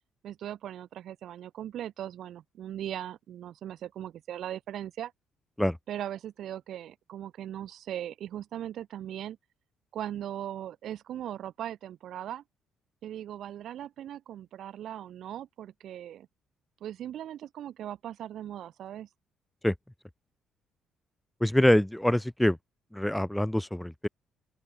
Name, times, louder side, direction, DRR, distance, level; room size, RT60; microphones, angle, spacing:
voice 1, 0.2-5.1 5.9-9.4 9.9-12.4 13.0-16.3 16.8-19.1, right 11 dB, 65° right, 5.7 m, -39 dB
voice 2, 21.4-22.6 22.9-24.1, left 1 dB, 5° left, 0.7 m, -25 dB
open air
cardioid pair, 125°, 0 cm